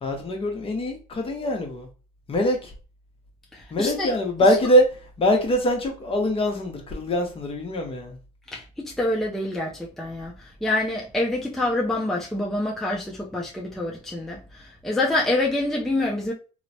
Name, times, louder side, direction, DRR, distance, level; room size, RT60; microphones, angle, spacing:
voice 1, 0.0-1.9 2.3-2.7 3.7-4.9 5.2-8.2, equal, 35° left, 0.8 m, -23 dB
voice 2, 3.5-4.1 8.5-16.3, left 2 dB, ahead, 0.5 m, -26 dB
3.0 x 2.0 x 2.6 m
cardioid pair, 110°, 17 cm